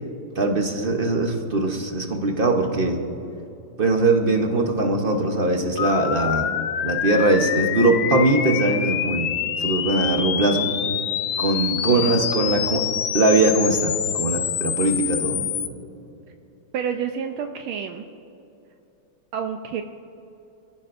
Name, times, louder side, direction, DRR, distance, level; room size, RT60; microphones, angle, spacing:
voice 1, 0.3-3.0 3.8-6.5 6.8-9.3 9.6-10.7 11.4-12.8 13.1-15.4, right 2 dB, 50° right, 3 dB, 0.6 m, -21 dB
sound 1, 5.8-15.7, left 10 dB, 70° left, 1.0 m, -26 dB
voice 2, 16.7-18.0 19.3-19.8, right 7 dB, 75° right, 6 dB, 1.4 m, -28 dB
25.0 x 15.0 x 2.6 m, 2.9 s
omnidirectional pair, 2.4 m